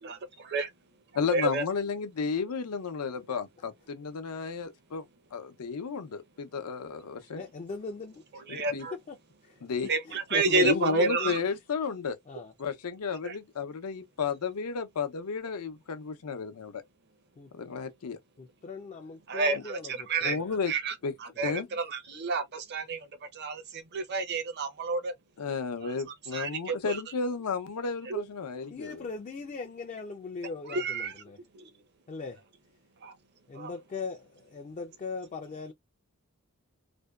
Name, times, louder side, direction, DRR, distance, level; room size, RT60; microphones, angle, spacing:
voice 1, 0.0-0.7 1.3-1.6 8.5-8.9 9.9-11.4 13.2-13.4 19.3-20.4 20.7-20.9 21.2-23.1 23.3-25.1 25.8-25.9 26.3-27.0 28.1-28.2 30.7-31.1 31.5-31.7 33.0-33.1 33.5-33.7, right 3 dB, 50° right, 0.6 m, -30 dB
voice 2, 1.1-5.0 5.3-7.4 8.5-8.9 9.6-9.9 10.6-12.2 12.6-16.8 17.5-18.2 19.5-19.6 20.2-20.7 21.0-21.1 21.4-21.7 25.4-29.1, left 5 dB, 85° left, 0.6 m, -33 dB
voice 3, 7.3-8.4 9.1-9.2 9.4-9.6 10.1-11.4 12.3-12.5 17.4-17.5 18.4-20.6 21.4-21.5 28.7-31.4 32.1-32.4 33.5-35.7, left 4 dB, 30° left, 0.3 m, -39 dB
2.6 x 2.2 x 2.2 m
head